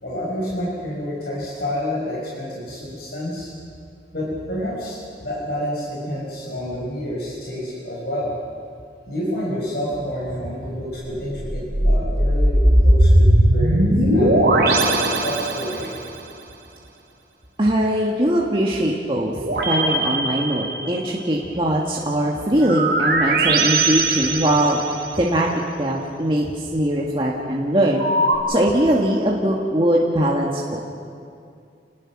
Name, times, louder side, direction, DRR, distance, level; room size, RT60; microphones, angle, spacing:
voice 1, 0.0-3.5 4.1-8.4 9.1-15.9, equal, 60° left, -5 dB, 5.7 m, -29 dB
sound 1, 11.1-16.1 19.4-21.2 22.6-25.2 27.9-28.4, right 1 dB, 60° right, 3.5 m, -19 dB
voice 2, 17.6-24.8 25.2-25.5 25.8-28.0 28.5-30.8, right 1 dB, 30° right, -2 dB, 1.8 m, -21 dB
28.5 x 19.5 x 6.2 m, 2.4 s
head